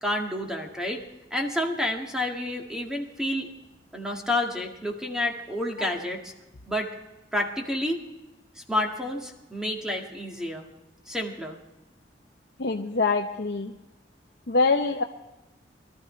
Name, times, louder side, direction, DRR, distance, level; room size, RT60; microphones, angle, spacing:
voice 1, 0.0-1.0 1.3-3.5 3.9-6.3 6.7-6.9 7.3-8.0 8.6-10.7 11.1-11.6, left 1 dB, 5° right, 1 dB, 1.8 m, -29 dB
voice 2, 12.6-13.7 14.5-15.0, left 3 dB, 65° left, 2 dB, 0.8 m, -24 dB
22.5 x 13.0 x 3.2 m, 1.0 s
head